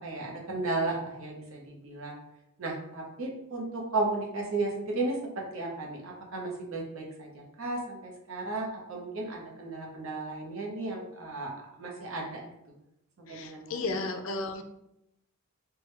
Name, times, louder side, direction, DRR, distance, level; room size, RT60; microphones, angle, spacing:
voice 1, 0.0-2.2 2.6-12.4 13.2-13.8, right 2 dB, 75° right, -1 dB, 0.9 m, -34 dB
voice 2, 13.3-14.6, left 3 dB, 65° left, 6 dB, 0.4 m, -34 dB
3.4 x 2.2 x 3.1 m, 0.83 s
head